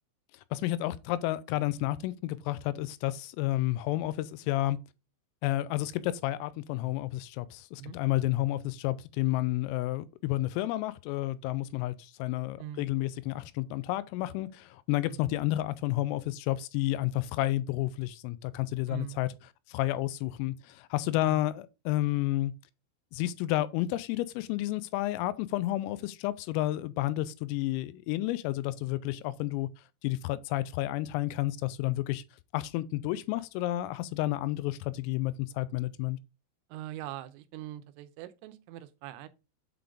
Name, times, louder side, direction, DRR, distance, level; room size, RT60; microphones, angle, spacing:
voice 1, 0.5-4.8 5.4-19.3 19.7-22.5 23.1-29.7 30.0-32.2 32.5-36.2, left 16 dB, 90° left, 3.2 m, -31 dB
voice 2, 18.9-19.2 21.2-21.4 36.7-39.3, right 13 dB, 90° right, 3.3 m, -42 dB
8.4 x 3.8 x 3.5 m
omnidirectional pair, 5.9 m